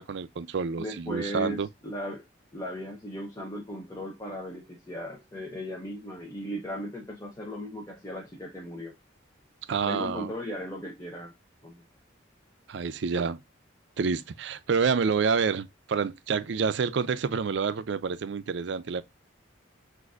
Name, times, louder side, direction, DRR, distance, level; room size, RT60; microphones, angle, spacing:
voice 1, 0.0-1.7 9.7-10.3 12.7-13.4 14.0-19.0, right 5 dB, 65° right, 0.4 m, -28 dB
voice 2, 0.8-2.3 2.5-8.9 9.9-11.3 11.6-11.8, equal, 15° left, 0.7 m, -37 dB
6.3 x 2.6 x 2.4 m
head